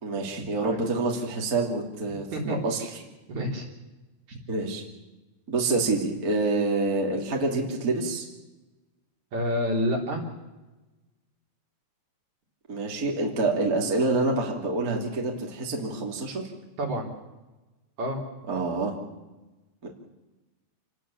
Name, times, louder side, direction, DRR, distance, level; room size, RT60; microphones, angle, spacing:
voice 1, 0.0-2.9 4.5-4.8 5.5-8.2 12.7-16.4 18.5-18.9 19.8-19.9, right 3 dB, 25° right, -1 dB, 3.0 m, -27 dB
voice 2, 3.3-3.7 9.3-10.2 16.8-17.1 18.0-18.2, equal, 45° right, 0 dB, 4.4 m, -28 dB
28.5 x 19.5 x 7.2 m, 1.1 s
omnidirectional pair, 4.9 m